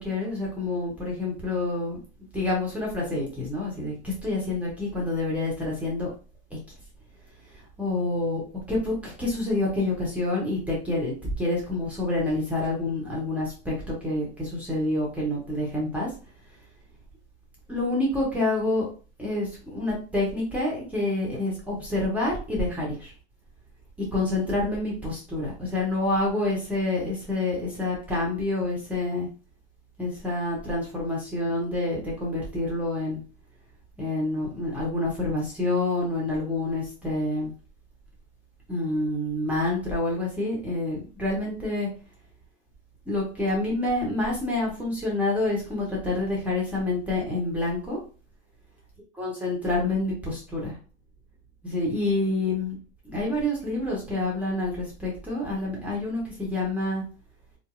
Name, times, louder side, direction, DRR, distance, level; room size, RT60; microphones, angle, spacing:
voice 1, 0.0-2.0 2.3-6.1 7.5-8.4 8.7-16.1 17.7-18.9 19.2-23.1 24.1-29.3 30.0-33.2 34.0-37.5 38.7-41.9 43.1-48.0 49.2-50.7 51.6-52.7 53.1-57.0, left 2 dB, 5° right, -5 dB, 1.0 m, -27 dB
2.6 x 2.0 x 2.4 m, 0.37 s
hypercardioid pair, 85°, 34 cm